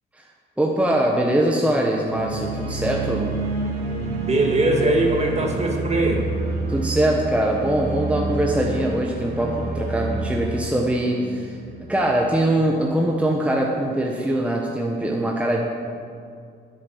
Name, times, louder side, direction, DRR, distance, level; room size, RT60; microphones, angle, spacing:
voice 1, 0.6-3.3 6.7-11.6 11.9-15.6, right 1 dB, 5° right, -1 dB, 1.2 m, -22 dB
sound 1, 2.1-12.1, right 2 dB, 55° right, 2.5 m, -28 dB
voice 2, 4.1-6.2, right 2 dB, 35° right, 1 dB, 2.1 m, -21 dB
10.5 x 8.6 x 7.0 m, 2.4 s
cardioid pair, 90°, 20 cm